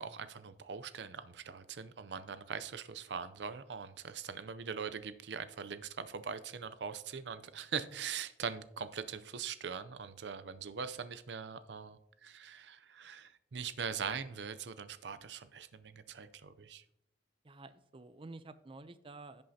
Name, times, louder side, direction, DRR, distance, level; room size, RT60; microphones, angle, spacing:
voice 1, 0.0-16.8, right 6 dB, 75° right, 13 dB, 0.6 m, -42 dB
voice 2, 17.4-19.4, right 3 dB, 30° right, 12 dB, 0.5 m, -50 dB
16.0 x 5.4 x 2.8 m, 0.79 s
head